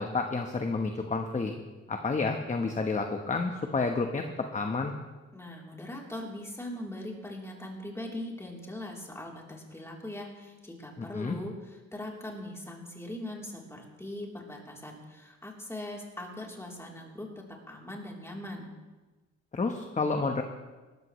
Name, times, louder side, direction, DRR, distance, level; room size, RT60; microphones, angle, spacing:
voice 1, 0.0-1.5 1.9-4.2 4.5-4.9 11.0-11.3 19.5-20.4, left 3 dB, 25° left, 5 dB, 1.1 m, -30 dB
voice 2, 5.3-18.7, left 1 dB, 10° left, -2 dB, 3.4 m, -41 dB
18.5 x 13.5 x 3.2 m, 1.2 s
cardioid pair, 90°, 30 cm